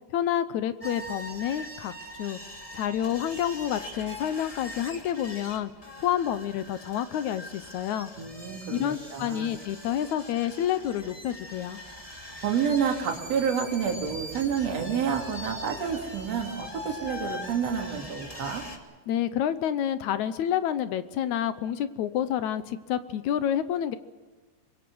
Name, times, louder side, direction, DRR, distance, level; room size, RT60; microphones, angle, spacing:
voice 1, 0.1-1.9 2.2-2.4 2.7-5.7 6.0-8.1 8.7-11.8 19.1-24.0, left 10 dB, 70° left, 12 dB, 2.1 m, -29 dB
sound 1, 0.8-18.8, left 1 dB, 10° left, 2.2 m, -42 dB
voice 2, 8.2-9.5 12.4-18.6, right 7 dB, 55° right, 1 dB, 3.7 m, -29 dB
25.5 x 22.0 x 6.2 m, 1.3 s
omnidirectional pair, 3.7 m